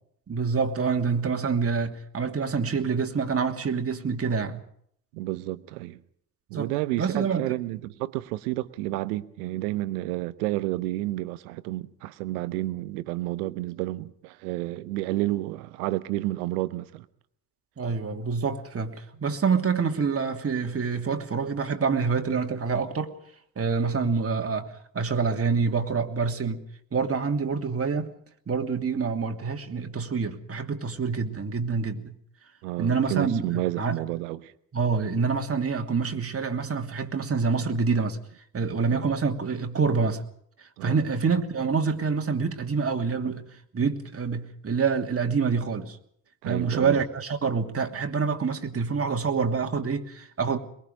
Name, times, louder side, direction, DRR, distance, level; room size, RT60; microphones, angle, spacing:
voice 1, 0.3-4.6 6.5-6.7 7.0-7.4 17.8-23.2 23.6-26.6 26.9-28.1 28.5-32.1 32.8-34.0 34.7-38.2 38.5-40.2 40.6-43.5 43.7-46.0 46.4-50.6, right 5 dB, 30° right, 2.9 m, -26 dB
voice 2, 5.1-6.0 6.5-17.0 32.6-34.5 37.5-37.7 38.9-39.1 40.8-41.0 46.4-47.0, right 17 dB, 65° right, 1.3 m, -30 dB
23.0 x 23.0 x 5.2 m
figure-of-eight pair, 50°, 49 cm